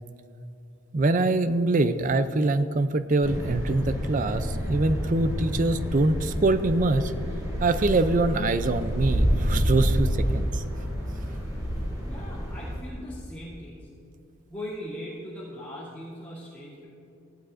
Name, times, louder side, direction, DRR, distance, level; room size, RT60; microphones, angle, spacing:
voice 1, 0.9-7.1 7.6-10.6, right 2 dB, 35° right, 12 dB, 0.4 m, -24 dB
sound 1, 3.2-12.8, equal, 15° right, 2.8 m, -28 dB
voice 2, 12.1-13.9 14.5-16.9, left 1 dB, 5° left, -13 dB, 2.6 m, -39 dB
17.5 x 12.5 x 2.6 m, 2.8 s
head